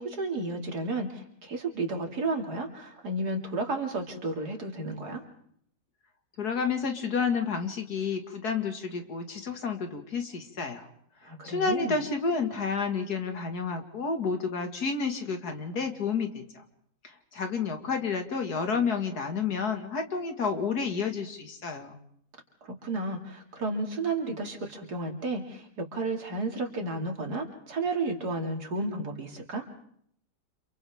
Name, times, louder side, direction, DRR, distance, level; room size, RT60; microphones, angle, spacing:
voice 1, 0.0-5.2 11.2-12.0 22.6-29.7, right 2 dB, 70° right, 3 dB, 3.0 m, -32 dB
voice 2, 6.4-10.9 11.4-16.4 17.0-22.0, left 5 dB, 70° left, 5 dB, 2.4 m, -30 dB
30.0 x 27.5 x 3.6 m, 0.67 s
omnidirectional pair, 1.8 m